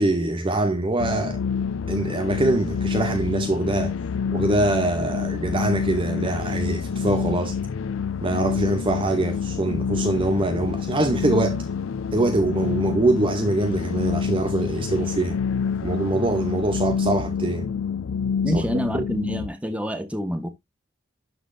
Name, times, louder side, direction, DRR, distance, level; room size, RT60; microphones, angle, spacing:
voice 1, 0.0-1.4 1.9-3.9 4.3-7.6 8.2-11.6 12.1-15.4 15.8-17.7 18.5-18.6, right 2 dB, 25° right, 0.7 m, -23 dB
sound 1, 1.0-19.5, left 6 dB, 70° left, 0.5 m, -27 dB
voice 2, 18.4-20.5, equal, 5° right, 1.0 m, -27 dB
11.5 x 4.2 x 2.6 m
head